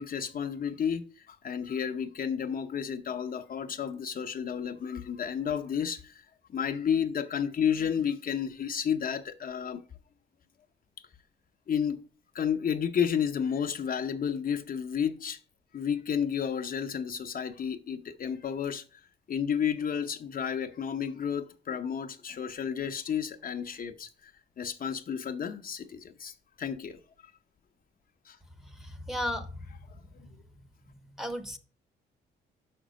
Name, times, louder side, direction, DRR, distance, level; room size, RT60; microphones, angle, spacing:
voice 1, 0.0-9.8 11.7-12.0 12.3-15.4 15.7-19.0 19.3-27.0 28.3-28.4, left 8 dB, 45° left, 0.7 m, -32 dB
voice 2, 28.6-29.7 30.2-30.7 30.9-31.6, left 1 dB, ahead, 0.9 m, -36 dB
5.9 x 5.2 x 6.2 m
cardioid pair, 90°, 20 cm